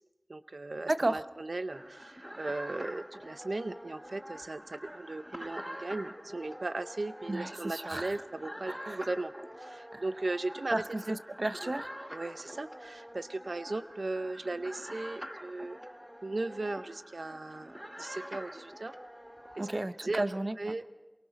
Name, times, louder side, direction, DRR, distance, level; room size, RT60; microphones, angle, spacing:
voice 1, 0.3-9.3 9.6-10.8 11.6-11.7 12.1-15.8 16.2-18.9 19.6-19.7 20.0-20.2 20.6-20.9, right 2 dB, 85° right, 10 dB, 0.7 m, -37 dB
voice 2, 0.9-1.2 7.3-8.1 8.7-9.0 9.9-10.0 10.7-11.9 19.6-20.7, right 1 dB, 50° right, 11 dB, 0.7 m, -33 dB
sound 1, 1.7-19.7, equal, 10° right, 1.0 m, -46 dB
27.5 x 23.5 x 4.1 m, 1.2 s
wide cardioid pair, 55°, 0 cm